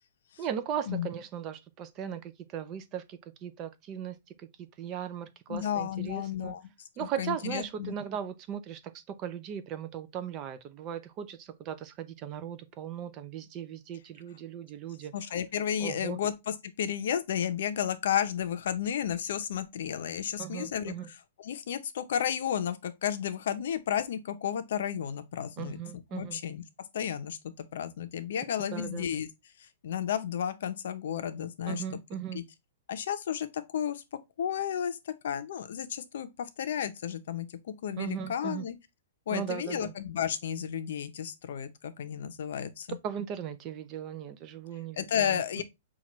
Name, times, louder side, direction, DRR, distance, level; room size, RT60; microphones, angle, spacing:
voice 1, 0.4-6.5 7.0-15.1 15.8-16.2 20.4-21.1 25.6-26.4 28.7-29.1 31.7-32.4 38.0-38.7 39.3-39.9 43.0-45.4, right 9 dB, 25° right, 0.4 m, -38 dB
voice 2, 5.5-6.7 7.0-7.9 15.1-20.9 21.4-25.8 26.1-26.6 26.9-29.3 29.6-31.8 32.3-32.4 32.9-34.0 34.4-38.8 39.3-43.0 44.9-45.6, left 9 dB, 60° left, 0.6 m, -32 dB
5.9 x 2.4 x 3.0 m
hypercardioid pair, 165°, 0 cm